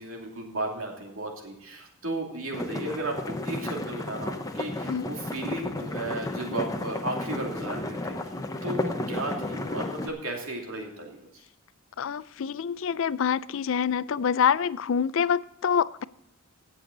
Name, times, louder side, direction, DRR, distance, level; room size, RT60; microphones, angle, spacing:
voice 1, 0.0-8.3 8.6-11.3, right 1 dB, 65° right, 1 dB, 2.6 m, -34 dB
sound 1, 2.5-10.1, left 1 dB, 15° left, 0.8 m, -33 dB
voice 2, 12.0-16.0, left 7 dB, 60° left, 18 dB, 0.4 m, -26 dB
16.5 x 7.0 x 3.9 m, 0.80 s
head